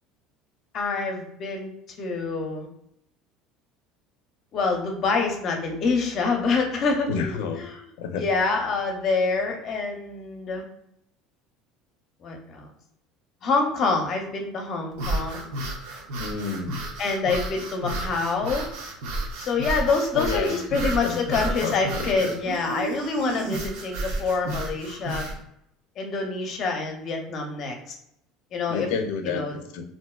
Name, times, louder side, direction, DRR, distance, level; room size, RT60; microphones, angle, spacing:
voice 1, 0.7-1.7 2.0-2.7 4.5-7.9 8.2-10.7 12.2-12.7 13.4-15.4 17.0-18.7 19.5-25.3 26.0-28.0 28.5-28.9 29.2-29.5, left 4 dB, 40° left, 3 dB, 0.7 m, -26 dB
voice 2, 7.1-7.6 8.0-8.2 16.2-16.8 20.1-22.3 28.7-29.8, left 6 dB, 85° left, 6 dB, 0.5 m, -30 dB
sound 1, 14.9-25.4, right 2 dB, 80° right, 0.7 m, -32 dB
3.4 x 2.6 x 2.3 m, 0.76 s
cardioid pair, 145°, 0 cm